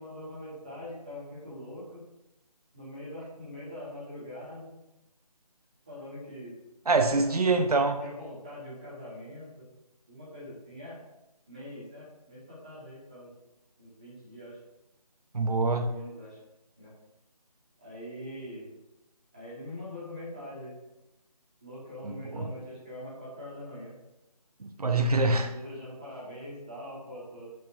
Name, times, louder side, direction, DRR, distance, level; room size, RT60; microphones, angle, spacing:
voice 1, 0.0-2.0 2.7-4.7 5.9-6.5 6.8-9.7 10.1-11.0 11.5-13.3 13.8-14.6 15.8-16.4 16.8-16.9 17.8-18.7 19.3-20.7 21.6-23.9 25.4-27.5, left 1 dB, 10° right, -9 dB, 1.5 m, -43 dB
voice 2, 6.9-8.0 15.3-15.9 22.0-22.5 24.6-25.5, right 3 dB, 70° right, 5 dB, 0.8 m, -25 dB
13.0 x 5.4 x 2.6 m, 0.93 s
figure-of-eight pair, 180°, 20 cm